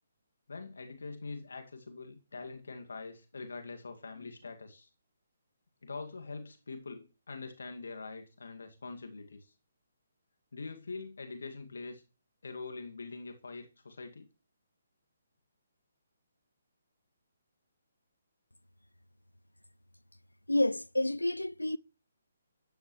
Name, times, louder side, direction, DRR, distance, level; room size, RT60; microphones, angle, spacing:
voice 1, 0.5-4.9 5.8-9.5 10.5-12.0 12.4-14.3, left 4 dB, 65° left, 2.1 m, -44 dB
voice 2, 20.5-21.8, left 1 dB, 90° left, 0.5 m, -29 dB
13.5 x 10.0 x 3.2 m
figure-of-eight pair, 135°, 0 cm